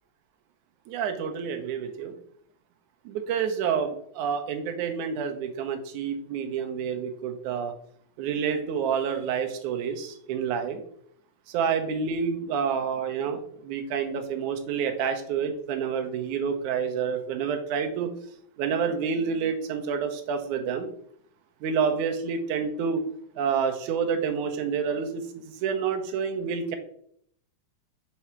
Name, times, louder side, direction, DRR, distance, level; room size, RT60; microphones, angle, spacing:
voice 1, 0.9-2.1 3.1-7.7 8.2-10.8 11.5-18.1 18.6-20.9 21.6-23.0 23.4-26.8, right 6 dB, 85° right, 5 dB, 2.3 m, -28 dB
6.1 x 4.6 x 4.4 m, 0.65 s
omnidirectional pair, 3.4 m